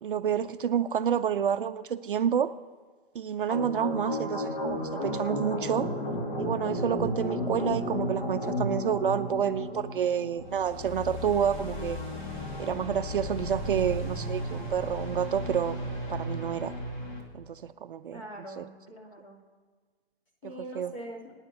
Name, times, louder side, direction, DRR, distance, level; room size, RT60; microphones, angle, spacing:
voice 1, 0.0-2.5 3.1-5.9 6.4-12.0 12.6-15.8 16.1-16.7 17.3-18.2 18.6-18.7 20.4-20.9, right 8 dB, 55° right, 10 dB, 0.5 m, -29 dB
sound 1, 3.5-17.2, left 1 dB, 45° left, 2.7 m, -34 dB
voice 2, 18.1-19.4 20.4-21.2, right 1 dB, 30° left, 0 dB, 2.6 m, -42 dB
13.5 x 9.7 x 8.3 m, 1.5 s
hypercardioid pair, 180°, 33 cm